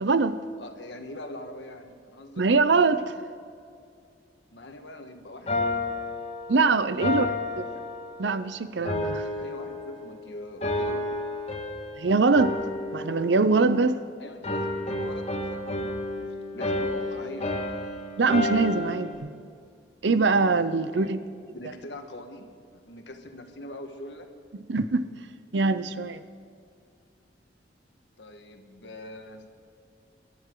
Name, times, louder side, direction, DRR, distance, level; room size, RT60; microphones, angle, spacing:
voice 1, 0.0-0.4 2.4-3.2 6.5-7.3 7.6-7.7 8.2-9.3 12.0-12.6 12.9-14.0 18.2-19.3 20.0-21.2 24.7-25.1 25.5-26.2, right 4 dB, 90° right, 0.7 m, -23 dB
voice 2, 0.6-2.5 4.5-5.7 7.0-7.3 9.4-11.0 14.2-17.5 20.9-21.2 21.5-24.3 28.2-29.5, left 1 dB, 85° left, 1.6 m, -42 dB
sound 1, 5.5-8.4 8.9-10.2 10.6-12.0 12.3-14.1 14.4-19.2, left 2 dB, 35° left, 1.9 m, -31 dB
24.0 x 12.0 x 3.9 m
head